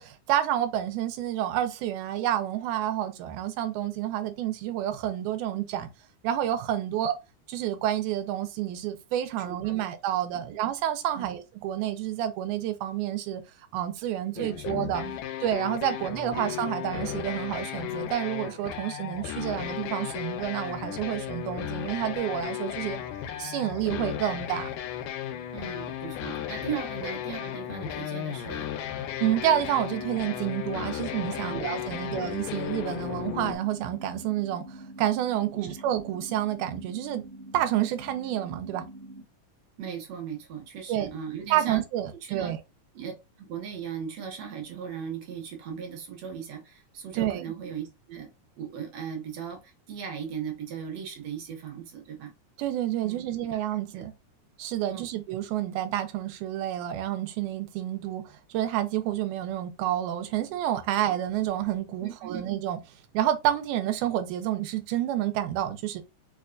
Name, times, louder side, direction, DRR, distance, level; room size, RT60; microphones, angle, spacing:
voice 1, 0.0-5.9 6.2-7.2 7.5-13.4 13.7-15.0 15.4-23.0 23.4-24.7 27.0-27.1 29.2-37.3 37.5-38.8 40.9-41.1 41.5-42.6 47.1-47.4 52.6-54.1 54.6-62.8 63.1-66.0, right 12 dB, 90° right, 2.0 m, -29 dB
voice 2, 9.4-9.9 10.3-10.6 11.2-11.4 14.3-14.6 15.0-15.2 22.8-23.0 25.5-28.7 31.4-32.1 39.8-41.8 42.2-42.6 43.0-43.1 43.4-48.3 48.6-52.3 53.0-53.3 53.9-54.0 54.9-55.1 62.0-62.4, right 7 dB, 70° right, 1.8 m, -38 dB
sound 1, 14.4-33.6, left 10 dB, 85° left, 2.0 m, -35 dB
sound 2, 29.2-39.2, right 1 dB, 40° right, 0.9 m, -45 dB
4.8 x 2.2 x 2.4 m
omnidirectional pair, 3.4 m